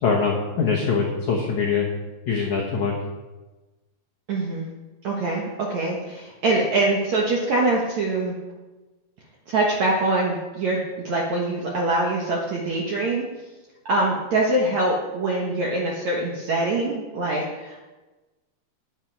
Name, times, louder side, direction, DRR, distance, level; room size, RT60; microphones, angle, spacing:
voice 1, 0.0-1.9 2.3-2.9, left 5 dB, 70° left, -2 dB, 1.7 m, -23 dB
voice 2, 4.3-4.7 5.0-8.4 9.5-13.2 13.9-17.8, right 2 dB, 65° right, -3 dB, 1.8 m, -24 dB
12.0 x 10.0 x 4.7 m, 1.2 s
omnidirectional pair, 5.2 m